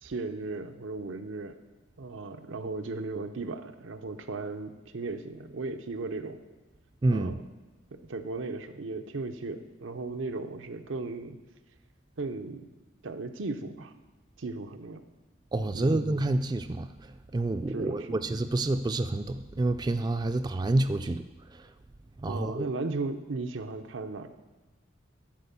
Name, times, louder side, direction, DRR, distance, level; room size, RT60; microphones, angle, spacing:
voice 1, 0.0-1.6 2.0-6.4 7.1-7.5 7.9-11.4 12.2-12.6 13.0-13.9 14.4-15.0 15.7-16.1 17.7-18.2 22.3-24.3, right 3 dB, 85° right, 8 dB, 0.7 m, -36 dB
voice 2, 7.0-7.4 15.5-16.9 17.3-21.2 22.2-22.7, right 2 dB, 20° right, 9 dB, 0.3 m, -28 dB
11.0 x 4.4 x 6.9 m, 1.2 s
head